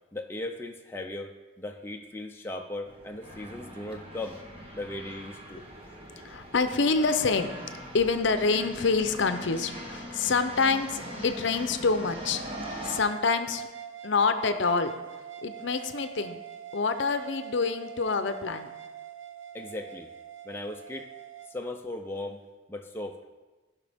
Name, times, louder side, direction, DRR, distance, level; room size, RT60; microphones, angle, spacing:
voice 1, 0.1-4.4 4.7-5.6 19.5-20.1 20.4-21.1 21.5-22.4 22.7-23.2, left 2 dB, 10° left, 2 dB, 0.5 m, -37 dB
sound 1, 2.8-13.0, equal, 30° right, 1.3 m, -41 dB
voice 2, 6.2-7.5 7.9-12.4 12.8-13.7 14.0-14.9 15.4-16.4 16.7-18.7, left 4 dB, 65° left, 9 dB, 0.6 m, -26 dB
sound 2, 12.5-21.5, right 10 dB, 65° right, 0.6 m, -44 dB
15.5 x 5.8 x 3.5 m, 1.2 s
head